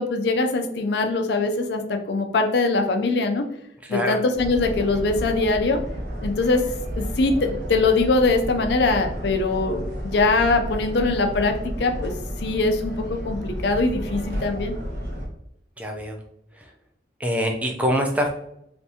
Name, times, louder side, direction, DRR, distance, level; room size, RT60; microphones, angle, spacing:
voice 1, 0.0-1.8 2.1-3.4 3.9-5.8 6.2-6.6 7.0-12.1 12.4-14.7, left 3 dB, 65° left, 5 dB, 0.4 m, -22 dB
voice 2, 3.8-4.2 15.8-16.2 16.5-16.7 17.2-18.3, equal, 10° right, 2 dB, 0.4 m, -24 dB
sound 1, 4.3-15.3, equal, 65° right, 1.0 m, -32 dB
3.3 x 2.6 x 2.7 m, 0.77 s
head